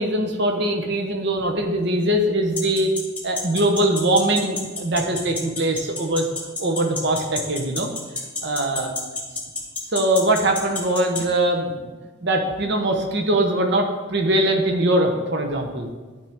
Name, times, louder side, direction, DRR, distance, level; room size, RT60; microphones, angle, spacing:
voice 1, 0.0-2.9 3.2-6.3 6.6-7.9 8.4-8.9 9.9-11.9 12.2-15.9, right 1 dB, 60° right, 4 dB, 0.9 m, -22 dB
sound 1, 2.6-11.2, left 4 dB, 5° left, 1.1 m, -28 dB
11.5 x 4.5 x 3.5 m, 1.3 s
head